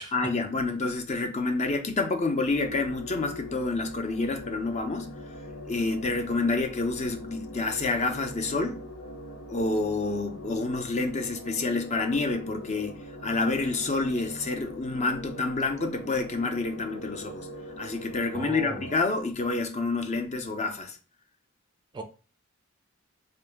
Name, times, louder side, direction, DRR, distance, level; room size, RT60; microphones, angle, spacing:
voice 1, 0.1-5.1 5.7-8.8 9.5-17.5 17.8-21.0, left 3 dB, 35° left, 0.5 m, -28 dB
sound 1, 2.5-19.0, left 1 dB, 80° left, 0.9 m, -42 dB
voice 2, 18.3-18.9 21.9-22.0, right 2 dB, 20° right, 0.4 m, -37 dB
3.8 x 2.6 x 3.4 m
head